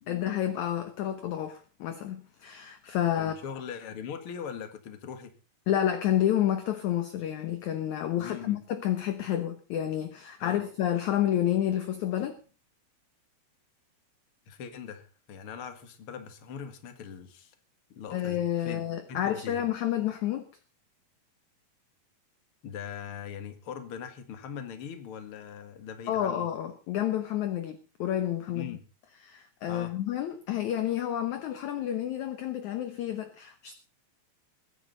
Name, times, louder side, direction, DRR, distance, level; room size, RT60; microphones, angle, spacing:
voice 1, 0.1-3.4 5.7-12.4 18.1-20.5 26.1-28.8 29.2-33.7, left 11 dB, 65° left, 2.1 m, -30 dB
voice 2, 3.2-5.3 8.2-8.6 10.4-10.6 14.5-17.5 17.9-18.8 19.1-19.6 22.6-26.5 28.5-28.8 29.7-29.9, left 7 dB, 45° left, 2.2 m, -41 dB
22.5 x 10.0 x 4.0 m
omnidirectional pair, 4.2 m